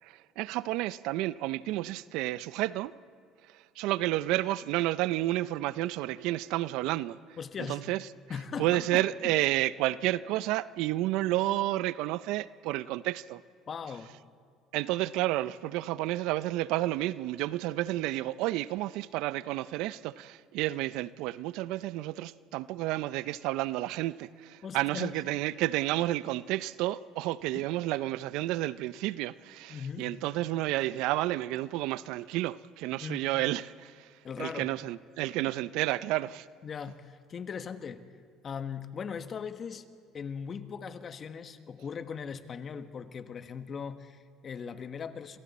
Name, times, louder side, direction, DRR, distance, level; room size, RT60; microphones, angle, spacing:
voice 1, 0.0-2.9 3.5-7.2 7.7-8.0 8.6-13.4 14.7-34.1 34.4-36.5, right 16 dB, 75° right, 0.5 m, -31 dB
voice 2, 7.4-7.8 8.3-9.3 13.7-14.1 24.6-25.2 27.5-27.6 29.7-30.1 33.0-33.3 34.2-34.7 36.6-38.1 38.4-39.9 40.1-45.4, left 6 dB, 45° left, 1.3 m, -39 dB
28.0 x 23.5 x 4.2 m
supercardioid pair, 85°, 0 cm